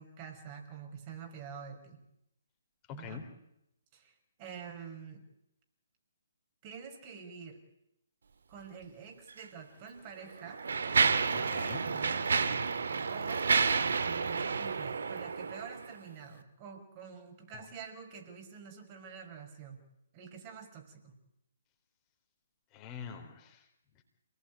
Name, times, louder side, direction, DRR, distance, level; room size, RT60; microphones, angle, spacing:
voice 1, 0.0-2.0 2.9-3.2 3.9-5.2 6.6-7.6 8.5-10.6 11.6-12.3 13.1-13.5 14.0-19.8 20.1-21.1, right 6 dB, 30° right, 4 dB, 5.7 m, -47 dB
voice 2, 2.9-3.2 11.3-11.9 17.5-17.7 22.7-23.7, left 7 dB, 20° left, 4 dB, 4.0 m, -44 dB
Mechanisms, 9.3-9.4 10.2-15.9, right 5 dB, 60° right, 1.7 m, -30 dB
28.0 x 19.5 x 9.5 m, 0.83 s
figure-of-eight pair, 135°, 0 cm